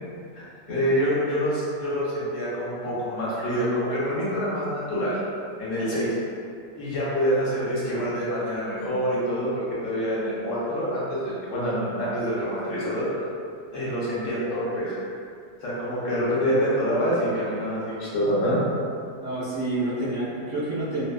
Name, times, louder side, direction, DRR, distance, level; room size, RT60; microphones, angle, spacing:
voice 1, 0.3-5.2 5.6-6.1 6.8-13.2 13.7-15.0 15.6-18.6, equal, 70° left, -8 dB, 1.0 m, -26 dB
voice 2, 19.2-21.1, right 2 dB, 60° right, -11 dB, 0.9 m, -28 dB
2.6 x 2.2 x 2.4 m, 2.4 s
omnidirectional pair, 1.4 m